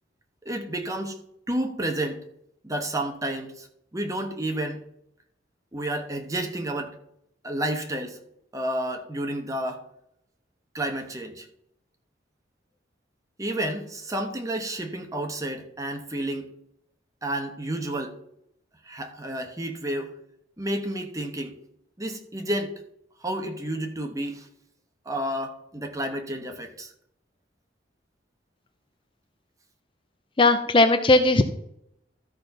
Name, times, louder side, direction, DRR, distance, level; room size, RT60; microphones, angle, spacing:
voice 1, 0.4-1.2 1.5-2.2 2.6-3.7 3.9-4.8 5.7-7.0 7.4-8.2 8.5-9.8 10.7-11.5 13.4-16.5 17.2-18.1 18.8-20.1 20.6-21.6 22.0-22.8 23.2-24.5 25.1-26.9, right 1 dB, 20° right, 5 dB, 1.1 m, -30 dB
voice 2, 30.4-31.4, left 2 dB, 30° left, 8 dB, 0.6 m, -18 dB
13.0 x 4.4 x 5.4 m, 0.75 s
head